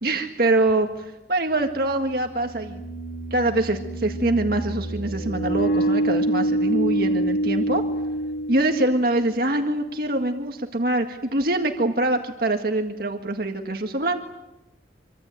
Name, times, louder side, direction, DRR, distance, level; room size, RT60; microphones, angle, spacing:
voice 1, 0.0-2.8 3.3-7.8 8.5-14.2, right 2 dB, 55° right, 4 dB, 1.8 m, -24 dB
sound 1, 0.7-0.8 2.3-9.1, right 1 dB, 65° left, 4.5 m, -26 dB
26.5 x 24.5 x 9.1 m, 0.95 s
head